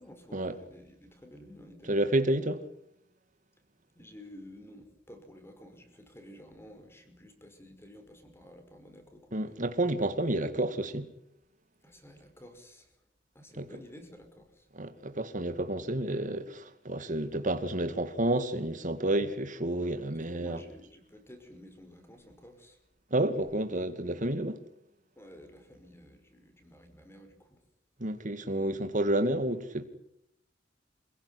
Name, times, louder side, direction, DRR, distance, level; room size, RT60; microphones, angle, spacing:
voice 1, 0.0-2.0 3.9-9.6 11.8-12.9 13.3-14.7 20.3-22.8 25.2-27.6, left 1 dB, 15° left, 5.3 m, -52 dB
voice 2, 1.9-2.7 9.3-11.1 13.6-13.7 14.7-20.6 23.1-24.7 28.0-29.9, right 1 dB, 45° right, 2.3 m, -30 dB
27.5 x 16.5 x 9.9 m
head